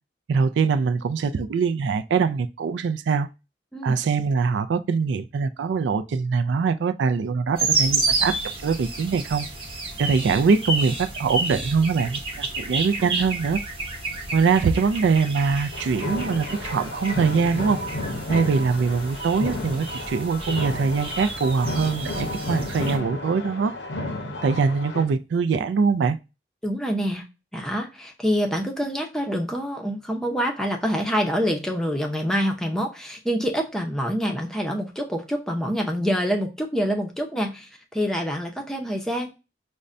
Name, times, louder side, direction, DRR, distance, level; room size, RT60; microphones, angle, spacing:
voice 1, 0.3-3.3 3.8-8.4 8.6-9.5 10.0-13.6 14.3-17.8 18.3-23.7 24.4-26.2, right 5 dB, 80° right, 0.3 m, -23 dB
sound 1, 7.6-23.0, right 3 dB, 30° right, 0.9 m, -30 dB
sound 2, 15.7-25.0, left 1 dB, 75° left, 0.7 m, -32 dB
voice 2, 26.6-27.2 27.5-39.3, equal, 5° left, 0.6 m, -26 dB
5.2 x 2.2 x 2.4 m
head